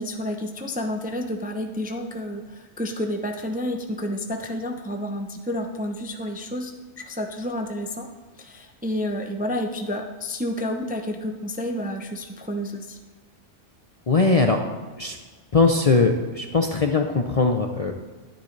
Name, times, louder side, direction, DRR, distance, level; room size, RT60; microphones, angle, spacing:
voice 1, 0.0-8.1 8.4-13.0, left 1 dB, 10° right, 4 dB, 0.5 m, -30 dB
voice 2, 14.1-14.6 15.0-15.2 15.5-17.9, left 3 dB, 40° left, 3 dB, 0.5 m, -20 dB
11.5 x 10.0 x 3.3 m, 1.4 s
omnidirectional pair, 1.3 m